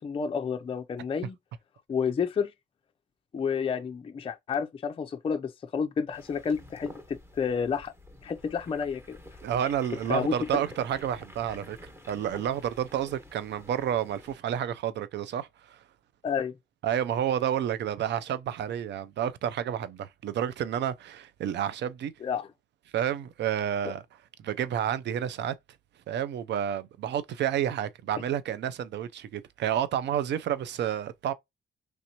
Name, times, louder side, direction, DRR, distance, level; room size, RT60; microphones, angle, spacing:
voice 1, 0.0-1.4 1.9-2.5 3.3-7.9 8.2-9.2 10.1-10.6 16.2-16.6 22.2-22.5, left 6 dB, 25° left, 0.4 m, -30 dB
sound 1, 6.1-14.3, left 1 dB, 15° right, 1.2 m, -49 dB
voice 2, 9.4-11.8 12.1-15.8 16.8-22.1 22.9-24.0 24.4-25.5 26.1-31.3, right 10 dB, 65° right, 0.5 m, -30 dB
3.1 x 2.9 x 2.7 m
cardioid pair, 90°, 20 cm